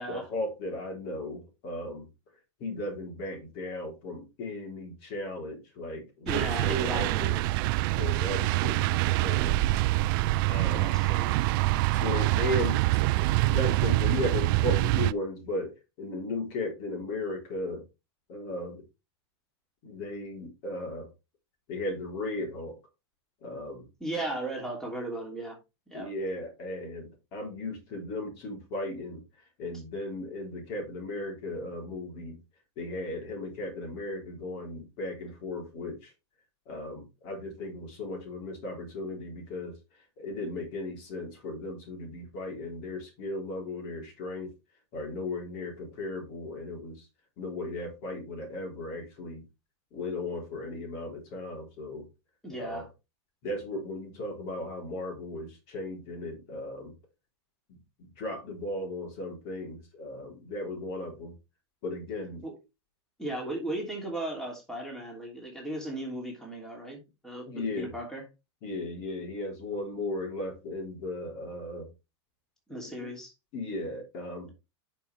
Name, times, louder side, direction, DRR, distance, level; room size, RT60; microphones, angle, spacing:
voice 1, 0.1-2.1 2.6-7.4 8.0-9.6 10.5-10.9 11.9-15.7 16.0-17.8 18.3-18.8 19.8-21.1 21.7-22.7 23.4-23.9 25.9-29.2 29.6-32.4 32.8-36.1 36.7-39.7 40.2-44.5 44.9-47.1 47.4-49.4 49.9-52.0 52.6-52.8 53.4-56.9 58.2-61.3 61.8-62.4 67.5-67.9 68.6-71.9 72.8-73.1 73.5-74.5, left 2 dB, 45° left, 3.9 m, -36 dB
voice 2, 6.2-7.3 10.7-11.4 24.0-25.6 25.9-26.1 52.4-52.9 62.4-62.6 63.2-68.3 72.7-73.3, right 1 dB, 5° left, 2.9 m, -36 dB
sound 1, 6.3-15.1, right 19 dB, 50° right, 0.4 m, -25 dB
9.6 x 5.6 x 3.4 m
supercardioid pair, 140°, 15 cm